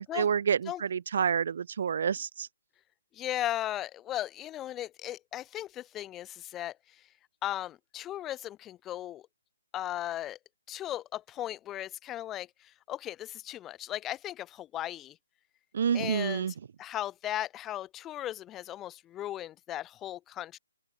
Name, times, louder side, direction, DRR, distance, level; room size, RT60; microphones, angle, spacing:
voice 1, 0.0-2.5 15.7-16.5, right 7 dB, 55° right, 1.2 m, -28 dB
voice 2, 3.1-6.7 7.4-9.2 9.7-10.4 10.7-15.2 15.9-16.4 16.8-20.6, left 13 dB, 15° left, 3.9 m, -37 dB
open air
figure-of-eight pair, 145°, 0 cm